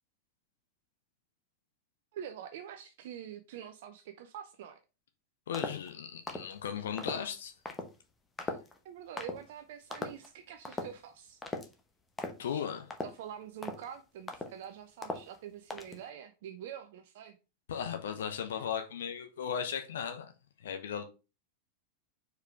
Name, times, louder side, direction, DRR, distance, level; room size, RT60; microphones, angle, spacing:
voice 1, 2.1-4.8 8.8-11.4 13.0-17.4, right 9 dB, 55° right, 0.6 m, -45 dB
voice 2, 5.5-7.5 12.4-12.9 17.7-20.3 20.6-21.0, left 8 dB, 60° left, 0.9 m, -36 dB
sound 1, 5.5-5.9 6.3-6.5 7.0-7.2 7.6-7.9 8.4-8.8 9.2-9.4 9.9-10.3 10.6-11.0 11.4-11.7 12.2-12.5 12.9-13.2 13.6-13.9 14.3-14.7 15.0-15.4 15.7-16.0, left 2 dB, 15° left, 0.9 m, -39 dB
4.7 x 4.7 x 4.7 m
figure-of-eight pair, 90°, 0 cm